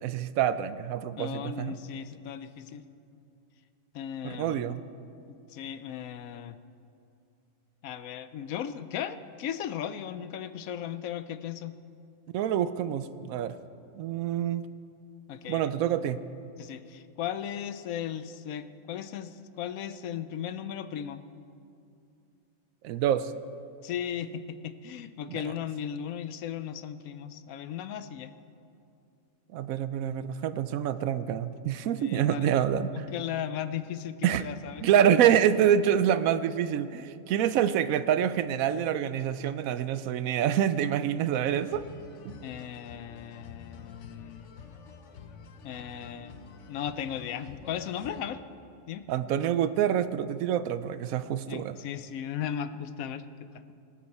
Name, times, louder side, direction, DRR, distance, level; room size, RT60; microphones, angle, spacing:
voice 1, 0.0-1.8 4.2-4.8 12.3-13.5 14.0-14.6 15.5-16.2 22.8-23.3 25.3-25.4 29.5-33.1 34.2-34.4 34.8-41.8 42.2-42.4 49.1-51.7, right 9 dB, 80° right, 13 dB, 1.0 m, -26 dB
voice 2, 1.2-2.8 3.9-4.8 5.3-6.6 7.8-11.8 15.3-15.8 16.6-21.2 23.8-28.3 32.0-32.7 32.9-34.9 42.4-44.4 45.6-46.4 46.7-48.4 48.9-49.0 51.5-53.2, left 9 dB, 85° left, 12 dB, 1.1 m, -36 dB
sound 1, 41.4-48.2, left 5 dB, 65° left, 1.1 m, -48 dB
23.0 x 8.7 x 4.2 m, 2.6 s
omnidirectional pair, 1.4 m